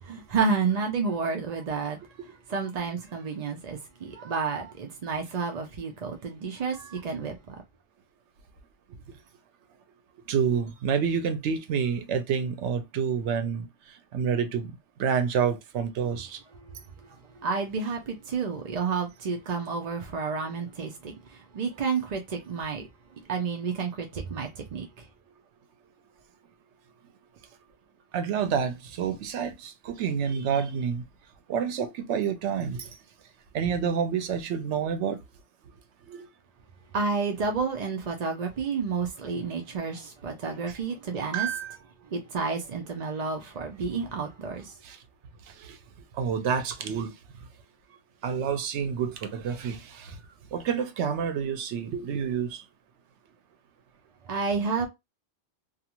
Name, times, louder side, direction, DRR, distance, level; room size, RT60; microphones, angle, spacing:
voice 1, 0.0-7.6 16.6-25.1 36.9-41.5 42.0-44.8 54.2-54.9, right 5 dB, 50° right, 0.5 m, -31 dB
voice 2, 10.3-13.7 14.1-16.4 28.1-31.0 31.5-32.9 33.5-35.2 36.1-36.3 41.3-41.8 44.8-45.0 45.6-45.8 46.2-47.1 48.2-50.1 50.5-52.6, right 7 dB, 85° right, 0.9 m, -28 dB
2.4 x 2.4 x 2.8 m
omnidirectional pair, 1.2 m